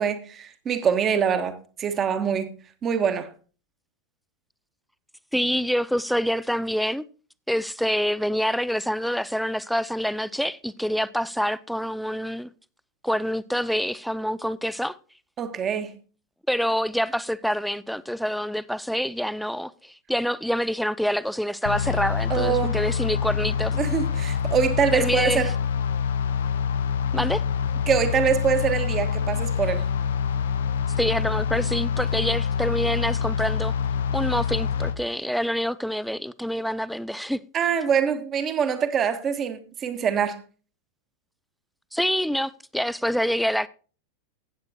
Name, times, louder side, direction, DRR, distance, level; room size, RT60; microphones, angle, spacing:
voice 1, 0.0-2.5 2.8-3.3 15.4-15.9 22.3-22.8 23.8-25.5 27.9-29.8 37.5-40.4, right 7 dB, 25° right, 1.2 m, -24 dB
voice 2, 5.3-7.0 7.5-12.5 13.0-15.0 16.5-23.8 24.9-25.5 27.1-27.4 31.0-33.7 34.1-37.4 41.9-43.7, equal, ahead, 0.4 m, -26 dB
sound 1, 21.7-35.0, left 7 dB, 60° left, 0.7 m, -26 dB
15.5 x 8.8 x 2.8 m
figure-of-eight pair, 90°, 0 cm